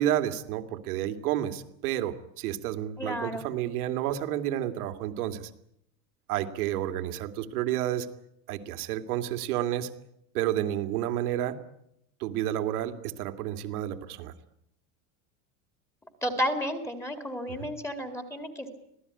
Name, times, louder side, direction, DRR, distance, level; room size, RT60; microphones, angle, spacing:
voice 1, 0.0-5.5 6.3-8.1 8.5-9.9 10.3-11.6 12.2-14.3 17.6-17.7, right 12 dB, 75° right, 8 dB, 2.6 m, -30 dB
voice 2, 3.0-3.4 16.2-18.8, equal, 5° left, 7 dB, 2.4 m, -32 dB
26.0 x 17.5 x 9.7 m, 0.77 s
supercardioid pair, 175°, 44 cm